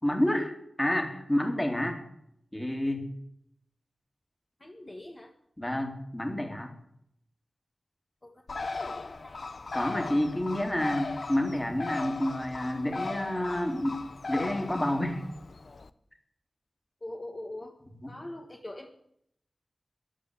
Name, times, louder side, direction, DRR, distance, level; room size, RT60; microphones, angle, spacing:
voice 1, 0.0-2.0 2.5-3.1 5.6-6.7 9.7-14.0 14.3-15.2 18.0-18.1, left 1 dB, 15° left, 6 dB, 3.1 m, -29 dB
voice 2, 4.6-5.3 8.2-9.5 17.0-17.8 18.1-18.9, left 1 dB, 35° left, 2 dB, 2.0 m, -43 dB
Bird, 8.5-15.9, left 3 dB, 60° left, 0.9 m, -38 dB
14.5 x 11.5 x 8.1 m, 0.74 s
wide cardioid pair, 80°, 0 cm